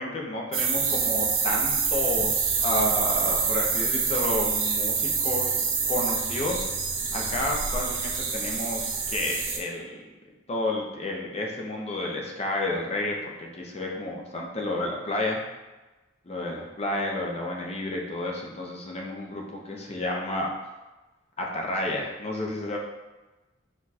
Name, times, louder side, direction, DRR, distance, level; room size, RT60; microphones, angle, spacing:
voice 1, 0.0-5.5 5.9-6.6 7.1-10.1 10.5-15.4 16.3-20.5 21.4-22.8, left 1 dB, 35° left, 0 dB, 0.6 m, -31 dB
sound 1, 0.5-9.6, right 5 dB, 85° right, 0.7 m, -26 dB
4.5 x 2.4 x 4.0 m, 1.1 s
head